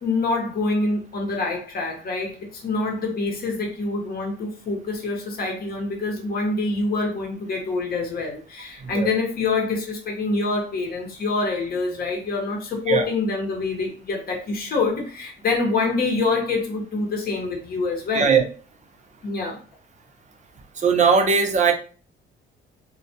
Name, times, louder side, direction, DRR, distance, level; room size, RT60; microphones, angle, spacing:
voice 1, 0.0-18.3 19.2-19.6, left 3 dB, 50° left, 0 dB, 0.8 m, -26 dB
voice 2, 18.1-18.4 20.8-21.7, right 5 dB, 35° right, 4 dB, 0.5 m, -19 dB
2.2 x 2.1 x 2.7 m, 0.38 s
cardioid pair, 90°, 20 cm